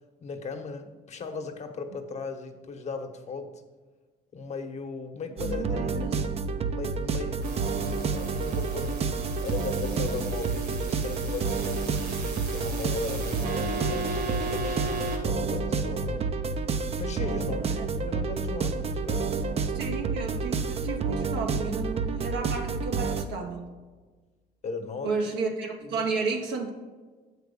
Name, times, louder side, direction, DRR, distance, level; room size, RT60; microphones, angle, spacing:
voice 1, 0.2-3.6 4.3-6.2 6.7-9.0 9.4-16.3 17.0-17.6 17.9-19.4 24.6-25.1 25.8-26.0, left 4 dB, 40° left, 5 dB, 1.1 m, -37 dB
sound 1, 5.4-23.2, right 5 dB, 35° right, 0.6 m, -29 dB
voice 2, 5.4-6.2 17.3-17.9 19.7-23.7 25.0-26.7, right 4 dB, 85° right, 1 dB, 1.2 m, -32 dB
sound 2, 7.4-15.2, right 2 dB, 65° right, 1.7 m, -37 dB
7.7 x 4.7 x 6.8 m, 1.4 s
cardioid pair, 110°, 17 cm